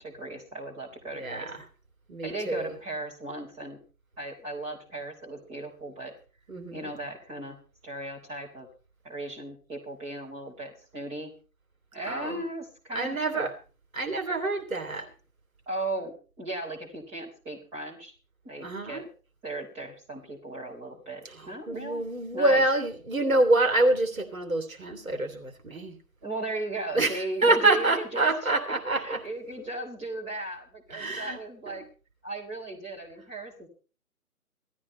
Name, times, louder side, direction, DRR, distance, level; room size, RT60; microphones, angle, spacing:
voice 1, 0.0-1.5 2.2-3.8 4.2-6.1 6.7-8.7 9.0-11.3 11.9-13.5 15.7-18.1 18.4-19.1 19.4-22.0 22.3-22.6 26.2-28.5 28.9-31.8 32.2-33.7, right 2 dB, 15° right, -4 dB, 3.8 m, -37 dB
voice 2, 1.1-1.6 2.1-2.7 6.5-6.9 12.0-12.4 12.9-13.5 13.9-15.0 18.6-19.0 21.2-26.0 26.9-29.2 30.9-31.4 31.7-31.9, right 2 dB, 60° right, 4 dB, 3.0 m, -26 dB
17.5 x 13.5 x 4.4 m, 0.37 s
figure-of-eight pair, 145°, 45 cm